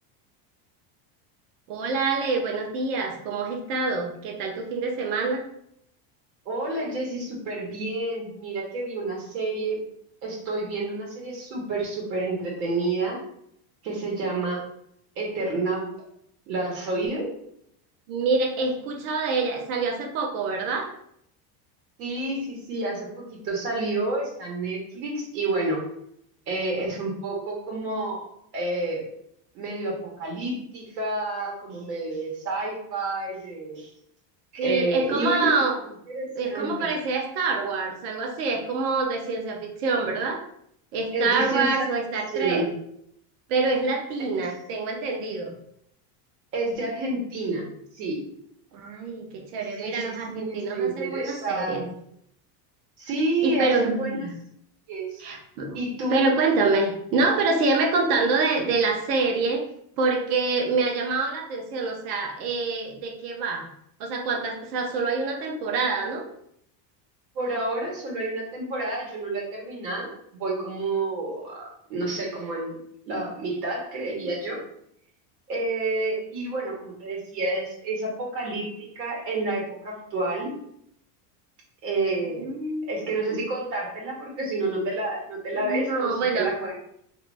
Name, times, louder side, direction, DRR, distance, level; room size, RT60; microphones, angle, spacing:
voice 1, 1.7-5.4 18.1-20.9 34.6-35.7 36.4-40.4 40.9-42.7 43.5-45.5 48.7-51.8 53.4-54.3 55.2-55.8 56.1-59.6 60.0-63.7 64.0-66.3 82.4-82.9 85.5-86.5, right 3 dB, 70° right, 2 dB, 0.9 m, -26 dB
voice 2, 6.4-9.9 10.2-13.2 13.8-14.6 15.2-15.9 16.5-17.3 22.0-25.8 26.5-28.2 28.5-29.0 29.5-33.9 34.5-35.5 36.1-36.9 41.1-41.9 42.3-42.7 44.2-44.4 46.5-47.7 47.9-48.2 49.8-51.9 53.0-54.2 54.9-55.2 55.7-56.3 67.3-72.7 73.1-74.6 75.5-80.5 81.8-82.5 82.9-86.8, right 2 dB, 85° right, -2 dB, 1.3 m, -29 dB
2.7 x 2.6 x 3.3 m, 0.71 s
cardioid pair, 160°, 47 cm